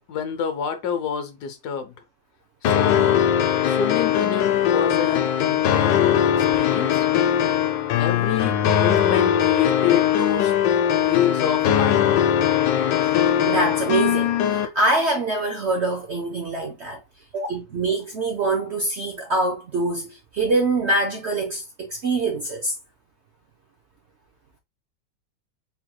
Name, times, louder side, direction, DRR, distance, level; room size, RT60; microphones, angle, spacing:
voice 1, 0.1-1.9 2.6-3.2 3.7-7.1 8.0-10.5 11.0-12.2, left 8 dB, 70° left, 1.2 m, -27 dB
sound 1, 2.6-14.7, left 10 dB, 90° left, 1.3 m, -20 dB
voice 2, 13.4-17.0 17.3-22.8, right 2 dB, 55° right, 0.7 m, -24 dB
4.4 x 3.8 x 2.2 m
omnidirectional pair, 1.9 m